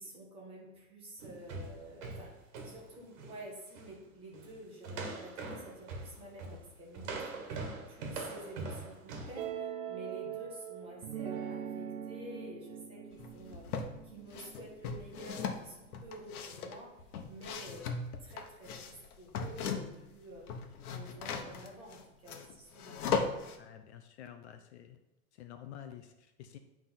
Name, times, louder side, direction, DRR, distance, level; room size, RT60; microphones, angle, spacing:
voice 1, 0.0-2.3 2.6-7.3 7.9-17.9 18.2-20.5 20.9-23.0, equal, 15° right, -2 dB, 1.0 m, -50 dB
sound 1, 1.2-3.4 3.7-4.0 4.3-4.6 4.8-9.4, right 3 dB, 55° right, 1.6 m, -42 dB
sound 2, 9.4-15.4, right 9 dB, 80° right, 0.9 m, -42 dB
sound 3, 13.2-13.9 14.3-20.1 20.4-23.6, left 5 dB, 85° left, 1.1 m, -38 dB
voice 2, 23.6-25.0 25.3-26.6, left 10 dB, 50° left, 7 dB, 0.6 m, -50 dB
8.4 x 3.6 x 5.7 m, 0.95 s
supercardioid pair, 180°, 43 cm